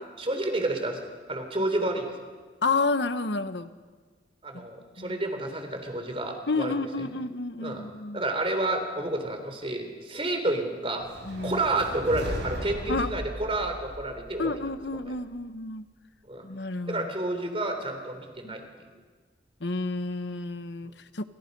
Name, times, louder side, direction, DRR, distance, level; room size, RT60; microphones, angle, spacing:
voice 1, 0.2-1.0 1.3-2.1 4.4-6.7 7.6-7.8 8.1-11.1 11.4-14.6 16.3-16.4 16.9-18.6, right 2 dB, 30° right, 6 dB, 3.5 m, -30 dB
voice 2, 2.6-3.7 4.5-4.7 5.0-5.2 6.5-8.2 11.2-11.6 12.9-13.2 14.4-15.9 16.4-17.1 18.4-18.5 19.6-21.2, left 3 dB, 70° left, 11 dB, 1.2 m, -30 dB
sound 1, 11.0-15.2, equal, 65° right, 7.6 m, -37 dB
29.5 x 27.5 x 5.5 m, 1.5 s
head